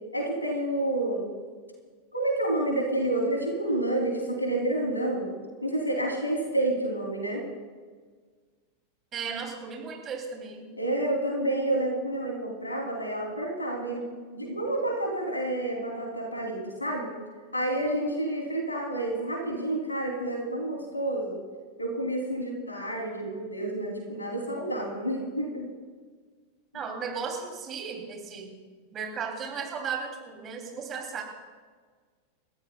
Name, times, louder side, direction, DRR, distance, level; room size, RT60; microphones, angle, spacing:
voice 1, 0.1-1.3 2.1-5.3 5.6-7.4 10.8-14.1 14.3-17.1 17.5-21.4 21.8-25.7 26.7-26.8, right 1 dB, 85° left, 0 dB, 3.0 m, -29 dB
voice 2, 9.1-10.7 26.7-28.5 28.9-31.2, right 6 dB, 25° right, 1 dB, 2.9 m, -35 dB
29.5 x 13.5 x 2.3 m, 1.5 s
figure-of-eight pair, 90°, 0 cm